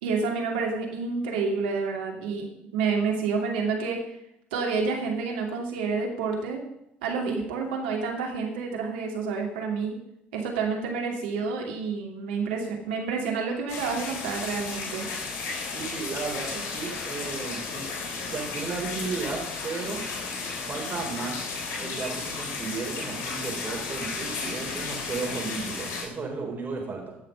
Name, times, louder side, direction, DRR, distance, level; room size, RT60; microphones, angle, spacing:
voice 1, 0.0-2.5 2.7-4.0 4.5-6.6 7.0-10.0 10.3-15.1, right 5 dB, 75° right, 1 dB, 2.5 m, -29 dB
sound 1, 13.7-26.0, left 4 dB, 55° left, 3.6 m, -34 dB
voice 2, 15.7-17.9 18.2-20.0 20.7-21.5 21.8-27.2, right 4 dB, 35° right, 0 dB, 4.6 m, -34 dB
17.0 x 6.6 x 5.4 m, 0.82 s
hypercardioid pair, 60°, 6 cm